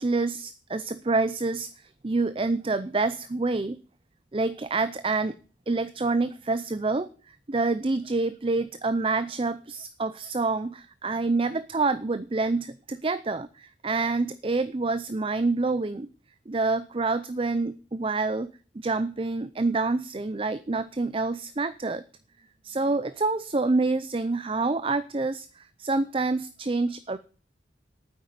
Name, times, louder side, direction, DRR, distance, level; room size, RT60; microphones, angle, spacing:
voice 1, 0.0-3.8 4.3-5.3 5.7-16.1 16.5-22.0 22.6-27.2, right 3 dB, 30° right, 13 dB, 0.5 m, -27 dB
9.3 x 8.0 x 9.2 m, 0.40 s
head